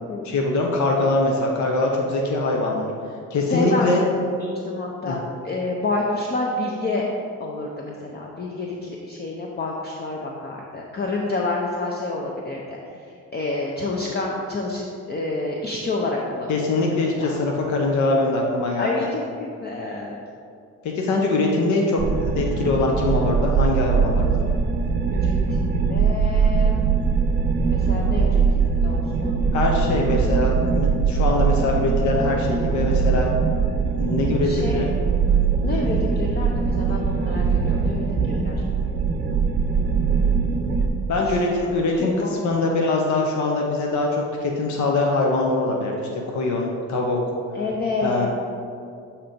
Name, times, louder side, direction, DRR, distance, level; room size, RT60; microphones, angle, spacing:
voice 1, 0.2-2.9 3.3-4.0 5.0-5.2 16.5-18.9 20.8-24.4 29.5-33.3 34.0-34.9 41.1-47.2 48.0-48.3, left 2 dB, 70° left, 0 dB, 0.8 m, -23 dB
voice 2, 3.5-7.1 7.4-16.7 17.1-17.3 18.8-20.2 25.1-26.8 27.6-29.4 34.4-34.8 35.6-38.6 41.2-42.8 47.5-48.3, left 2 dB, 35° left, -1 dB, 0.6 m, -29 dB
sound 1, 22.0-40.9, right 5 dB, 35° right, 0.6 m, -21 dB
7.3 x 2.9 x 5.1 m, 2.4 s
cardioid pair, 90°, 30 cm